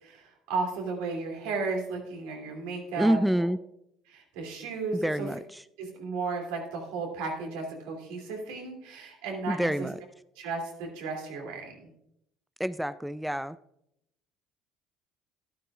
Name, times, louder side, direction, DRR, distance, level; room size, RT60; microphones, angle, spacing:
voice 1, 0.0-3.2 4.1-5.3 5.8-9.9 10.4-11.9, right 4 dB, 80° right, 1 dB, 2.8 m, -34 dB
voice 2, 3.0-3.6 4.9-5.6 9.5-10.0 12.6-13.6, right 1 dB, 5° right, 14 dB, 0.4 m, -27 dB
12.5 x 12.5 x 2.5 m, 0.78 s
hypercardioid pair, 65°, 0 cm